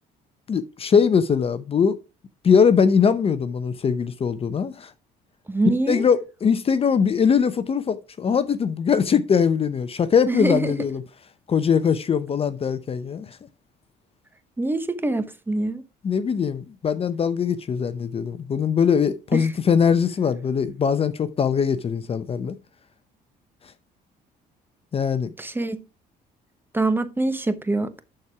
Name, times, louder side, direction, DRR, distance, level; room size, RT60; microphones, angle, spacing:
voice 1, 0.5-2.0 2.4-4.9 5.9-11.0 11.5-13.4 16.0-22.6 24.9-25.3, left 6 dB, 35° left, 0.7 m, -21 dB
voice 2, 5.5-6.1 10.3-10.8 14.6-15.9 19.3-19.5 25.4-25.8 26.7-28.0, right 2 dB, 10° right, 0.9 m, -24 dB
11.5 x 4.4 x 4.7 m
cardioid pair, 110°, 17 cm